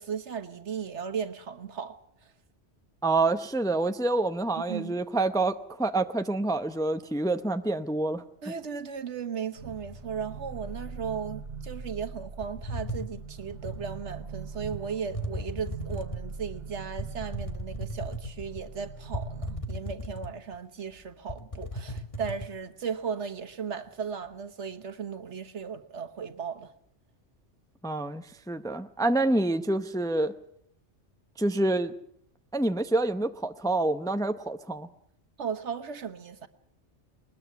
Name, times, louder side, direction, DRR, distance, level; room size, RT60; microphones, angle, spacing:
voice 1, 0.0-2.0 4.6-5.0 8.4-26.7 35.4-36.5, right 6 dB, 75° right, 1.5 m, -36 dB
voice 2, 3.0-8.2 27.8-30.3 31.4-31.9 32.5-34.9, right 2 dB, 5° left, 0.6 m, -27 dB
sound 1, 9.6-19.6, right 4 dB, 55° right, 1.6 m, -42 dB
sound 2, 12.4-13.9 14.6-14.8 15.1-16.3 17.0-18.6 19.1-20.6 20.9-21.0 21.3-22.5, equal, 30° left, 1.4 m, -36 dB
21.0 x 20.5 x 7.0 m
omnidirectional pair, 1.2 m